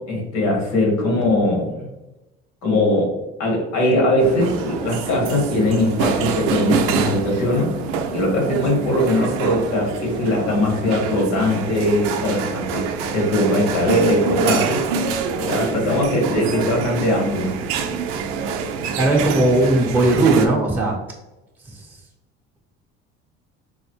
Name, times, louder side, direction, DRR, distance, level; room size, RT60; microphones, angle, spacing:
voice 1, 0.0-1.9 2.6-7.7 8.1-14.9 15.5-17.6, left 1 dB, 65° left, 0 dB, 1.4 m, -20 dB
sound 1, 4.2-20.5, right 5 dB, 85° right, 0.5 m, -26 dB
voice 2, 19.0-21.0 21.6-22.0, right 2 dB, 5° right, -3 dB, 0.8 m, -18 dB
4.0 x 2.1 x 3.0 m, 0.98 s
supercardioid pair, 90°, 30 cm